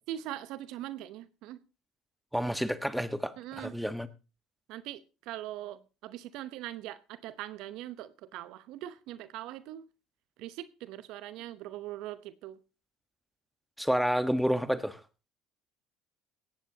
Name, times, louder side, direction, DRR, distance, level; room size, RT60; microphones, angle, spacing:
voice 1, 0.1-1.6 3.4-3.7 4.7-9.9 10.4-12.6, right 13 dB, 65° right, 0.9 m, -41 dB
voice 2, 2.3-4.1 13.8-15.0, equal, ahead, 1.3 m, -29 dB
17.5 x 15.0 x 2.9 m
hypercardioid pair, 70°, 0 cm